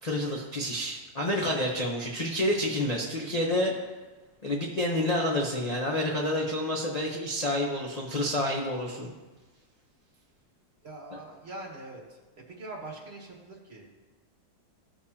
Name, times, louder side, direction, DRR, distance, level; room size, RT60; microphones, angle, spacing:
voice 1, 0.0-3.7 4.4-9.1, left 1 dB, 30° left, -2 dB, 0.7 m, -29 dB
voice 2, 10.8-13.9, right 2 dB, 35° right, -2 dB, 1.7 m, -43 dB
15.0 x 6.7 x 2.8 m, 1.2 s
omnidirectional pair, 1.9 m